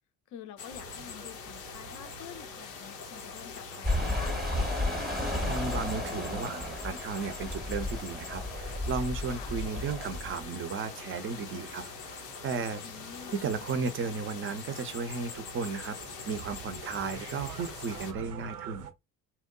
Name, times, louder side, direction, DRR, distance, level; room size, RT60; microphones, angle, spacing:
voice 1, 0.3-4.4 9.3-9.5 12.8-13.4, left 9 dB, 40° left, 0.5 m, -47 dB
sound 1, 0.6-18.1, left 6 dB, 80° left, 0.6 m, -44 dB
sound 2, 0.7-18.9, right 7 dB, 75° right, 0.6 m, -49 dB
sound 3, 3.8-10.5, left 1 dB, ahead, 0.8 m, -33 dB
voice 2, 5.5-11.8 12.4-12.8 13.4-16.0 16.2-18.9, right 5 dB, 30° right, 0.5 m, -34 dB
2.7 x 2.1 x 2.2 m
figure-of-eight pair, 50°, 47 cm